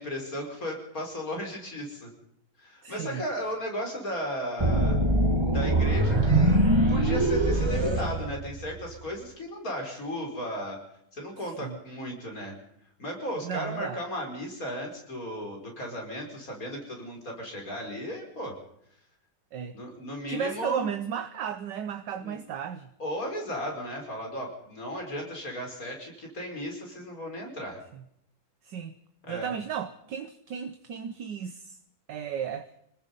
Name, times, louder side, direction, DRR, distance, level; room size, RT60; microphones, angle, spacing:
voice 1, 0.0-2.1 2.6-5.0 5.5-6.6 6.9-10.8 11.1-12.6 13.0-18.6 19.7-20.8 22.2-22.4 23.0-27.8 29.2-29.5, equal, 40° left, 5.7 m, -35 dB
voice 2, 2.8-3.3 11.6-11.8 13.4-14.0 19.5-19.8 20.3-22.9 28.6-29.0 29.3-31.8 32.1-32.7, right 8 dB, 65° right, 1.5 m, -34 dB
sound 1, 4.6-8.9, right 1 dB, 15° right, 1.8 m, -23 dB
27.0 x 19.5 x 5.5 m
omnidirectional pair, 2.2 m